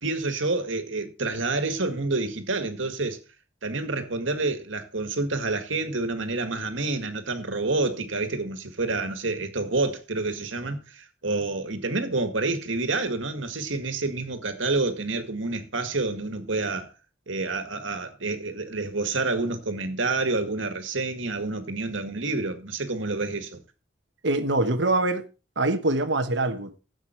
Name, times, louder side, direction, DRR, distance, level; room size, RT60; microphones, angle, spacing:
voice 1, 0.0-3.2 3.6-16.9 17.3-23.6, right 3 dB, 85° right, 2.0 m, -28 dB
voice 2, 24.2-25.2 25.6-26.8, right 2 dB, 65° right, 1.2 m, -24 dB
13.0 x 8.0 x 4.5 m
head